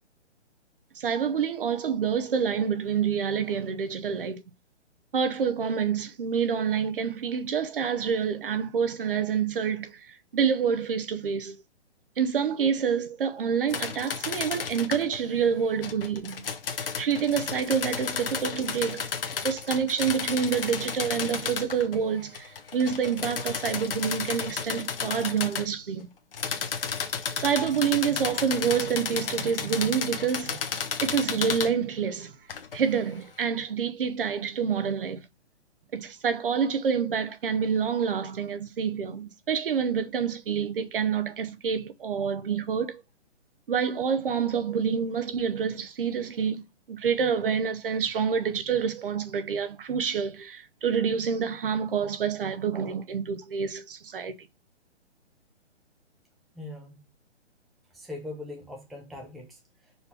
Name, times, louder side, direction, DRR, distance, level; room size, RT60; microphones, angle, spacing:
voice 1, 1.0-4.4 5.1-11.6 12.2-16.5 17.0-19.1 19.4-26.1 27.4-30.6 31.0-32.3 32.7-35.2 35.9-43.0 43.7-54.4, right 7 dB, 50° right, 0.9 m, -27 dB
sound 1, 13.7-15.2 15.8-22.0 22.3-25.7 26.3-31.7 32.5-32.8, left 6 dB, 50° left, 1.3 m, -33 dB
voice 2, 56.5-57.0 57.9-60.1, left 2 dB, ahead, 0.7 m, -42 dB
5.4 x 4.3 x 4.2 m
figure-of-eight pair, 130°, 35 cm